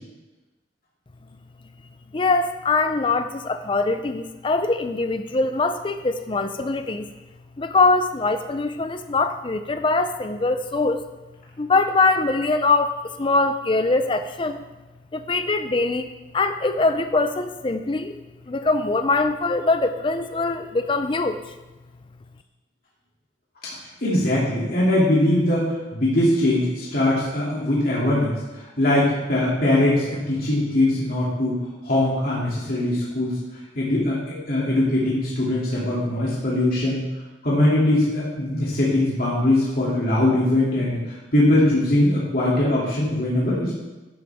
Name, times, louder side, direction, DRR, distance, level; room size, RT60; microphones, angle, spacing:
voice 1, 2.1-7.1 7.6-11.0 11.6-14.6 15.1-16.1 16.3-18.2 18.5-21.4, left 3 dB, 25° left, 8 dB, 0.5 m, -22 dB
voice 2, 24.0-33.4 33.8-37.0 37.4-43.8, left 1 dB, 55° left, -7 dB, 2.7 m, -21 dB
12.5 x 11.0 x 3.6 m, 1.1 s
head